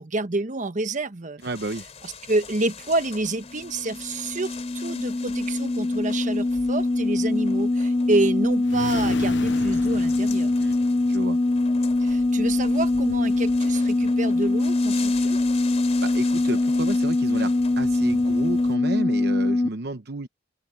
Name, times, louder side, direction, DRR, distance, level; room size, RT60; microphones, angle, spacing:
voice 1, 0.0-1.4 2.0-10.5 12.0-15.4, right 2 dB, 45° right, 1.2 m, -28 dB
sound 1, 1.4-18.8, left 5 dB, 35° left, 3.0 m, -43 dB
voice 2, 1.4-1.8 10.6-10.8 11.1-11.4 16.0-20.3, right 2 dB, 60° right, 0.8 m, -32 dB
sound 2, 3.5-19.7, left 2 dB, 20° left, 0.4 m, -23 dB
sound 3, 8.6-11.2, left 4 dB, 70° left, 0.6 m, -36 dB
open air
head